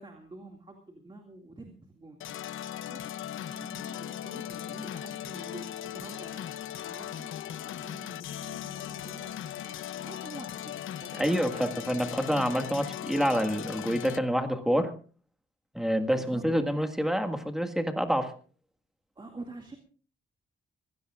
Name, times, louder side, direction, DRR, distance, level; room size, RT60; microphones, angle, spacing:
voice 1, 0.0-2.2 2.9-3.0 3.5-6.5 6.8-11.7 16.1-16.5 19.2-19.8, right 2 dB, 25° right, 3 dB, 2.3 m, -47 dB
sound 1, 2.2-14.2, left 11 dB, 85° left, 0.7 m, -38 dB
voice 2, 11.1-14.9 15.7-18.3, equal, ahead, 6 dB, 1.8 m, -27 dB
26.0 x 17.0 x 2.5 m, 0.40 s
wide cardioid pair, 135°, 20 cm